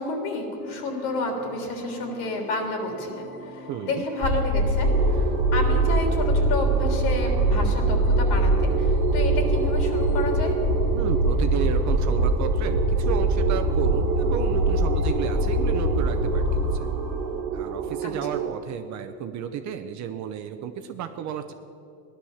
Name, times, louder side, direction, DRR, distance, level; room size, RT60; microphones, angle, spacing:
voice 1, 0.0-10.5 18.0-18.1, left 2 dB, 65° left, 2 dB, 3.4 m, -30 dB
sound 1, 0.6-17.4, left 1 dB, 85° left, 2.6 m, -44 dB
voice 2, 3.7-4.0 10.9-16.9 17.5-21.5, right 8 dB, 40° right, 8 dB, 0.8 m, -32 dB
sound 2, 4.2-16.8, right 1 dB, 30° left, 1.2 m, -23 dB
sound 3, 4.8-18.5, right 7 dB, 90° right, 1.6 m, -30 dB
16.5 x 11.5 x 7.2 m, 2.7 s
cardioid pair, 145°, 44 cm